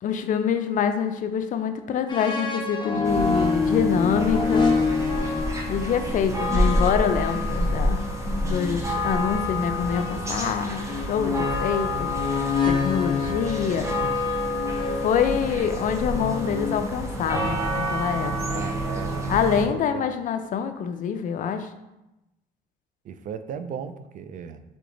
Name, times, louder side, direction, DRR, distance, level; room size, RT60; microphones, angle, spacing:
voice 1, 0.0-4.7 5.7-8.0 8.5-12.1 12.7-13.9 15.0-18.6 19.3-21.7, left 7 dB, 50° left, 9 dB, 0.4 m, -25 dB
sound 1, 2.1-8.8 9.9-17.2, left 4 dB, 25° left, 0.9 m, -28 dB
sound 2, 3.0-19.6, left 1 dB, 15° right, 0.8 m, -28 dB
voice 2, 18.5-20.0 23.0-24.6, right 7 dB, 50° right, 11 dB, 0.4 m, -36 dB
3.8 x 3.5 x 3.8 m, 0.95 s
cardioid pair, 110°, 17 cm